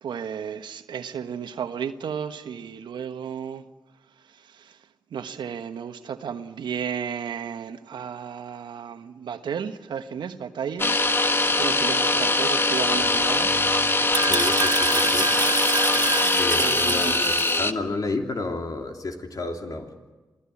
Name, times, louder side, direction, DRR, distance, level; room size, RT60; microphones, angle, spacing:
voice 1, 0.0-3.6 4.3-4.8 5.1-11.0 11.6-13.6 16.5-17.1, right 7 dB, 80° right, 1.2 m, -33 dB
sound 1, 10.8-17.7, left 2 dB, 30° left, 1.4 m, -22 dB
sound 2, 13.0-17.6, right 5 dB, 60° right, 1.1 m, -28 dB
voice 2, 14.3-15.3 16.4-19.9, left 3 dB, 55° left, 3.1 m, -31 dB
27.5 x 17.5 x 8.5 m
supercardioid pair, 40°, 8 cm